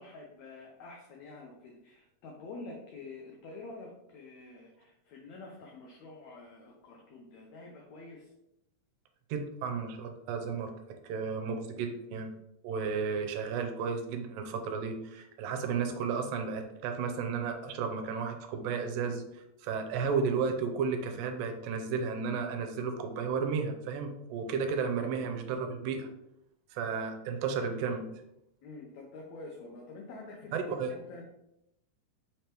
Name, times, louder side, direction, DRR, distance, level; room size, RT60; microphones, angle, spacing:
voice 1, 0.0-8.3 24.9-25.1 28.6-31.2, left 3 dB, 85° left, 0 dB, 1.6 m, -47 dB
voice 2, 9.3-10.7 11.0-12.3 12.6-26.1 26.7-28.1 30.5-30.9, right 5 dB, 85° right, 5 dB, 2.3 m, -33 dB
5.5 x 3.2 x 2.9 m, 0.84 s
omnidirectional pair, 4.0 m